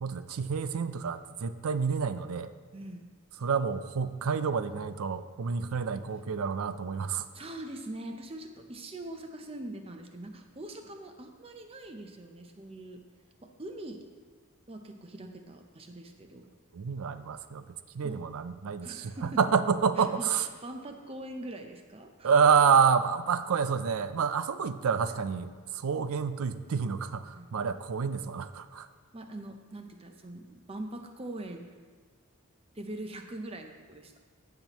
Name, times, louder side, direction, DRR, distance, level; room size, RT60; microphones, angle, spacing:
voice 1, 0.0-2.5 3.4-7.3 16.7-20.5 22.2-28.9, right 6 dB, 75° right, 12 dB, 0.4 m, -28 dB
voice 2, 2.7-3.0 7.3-13.0 13.4-14.0 14.7-16.4 18.0-18.2 18.8-19.4 20.0-22.3 27.3-27.5 29.1-31.6 32.7-34.1, right 1 dB, 25° right, 5 dB, 0.6 m, -42 dB
15.5 x 5.9 x 3.0 m, 1.5 s
head